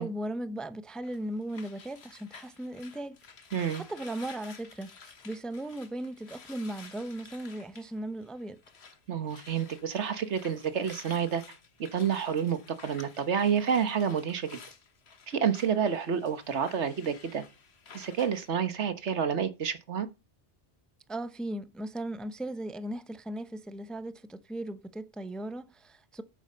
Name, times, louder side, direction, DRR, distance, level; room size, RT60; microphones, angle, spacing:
voice 1, 0.0-3.2 3.7-8.6 21.1-26.2, right 1 dB, ahead, 0.6 m, -37 dB
sound 1, 1.0-9.0 9.2-18.5, left 5 dB, 70° left, 1.6 m, -52 dB
voice 2, 3.5-3.8 9.1-11.4 11.8-14.6 15.3-17.4 17.9-20.1, right 7 dB, 85° right, 1.5 m, -29 dB
9.0 x 8.7 x 5.6 m
omnidirectional pair, 1.1 m